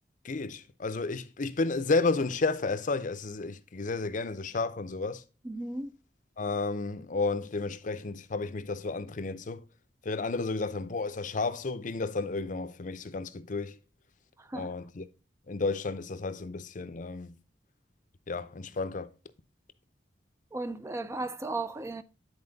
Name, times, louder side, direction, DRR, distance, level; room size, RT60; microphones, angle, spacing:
voice 1, 0.2-5.2 6.4-9.7 10.0-13.8 14.5-15.0 15.5-17.3 18.3-19.1, left 3 dB, 45° left, 0.6 m, -32 dB
voice 2, 5.4-5.9 14.4-14.7 20.5-22.0, right 2 dB, 15° right, 0.4 m, -35 dB
9.8 x 4.3 x 3.9 m
head